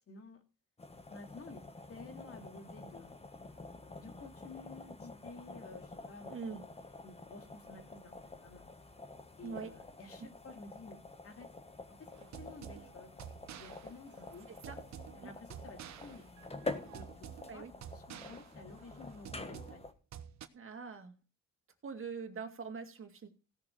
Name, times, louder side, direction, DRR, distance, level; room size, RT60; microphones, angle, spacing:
voice 1, 0.1-0.4 1.1-1.6 1.9-3.1 4.0-6.4 6.7-8.7 9.4-11.0 11.2-11.5 11.9-13.2 13.5-14.5 15.1-17.3 17.5-17.6 17.9-19.8, left 3 dB, 50° left, 6 dB, 2.6 m, -52 dB
sound 1, 0.8-19.9, left 3 dB, 20° left, 1.7 m, -48 dB
voice 2, 6.3-6.6 9.4-9.7 14.7-14.8 15.2-15.3 17.5-17.7 20.5-21.2 21.8-23.3, right 5 dB, 45° right, 5 dB, 2.3 m, -43 dB
sound 2, 12.1-20.5, right 9 dB, 65° right, 1.2 m, -50 dB
17.0 x 6.7 x 4.6 m, 0.32 s
cardioid pair, 90°, 30 cm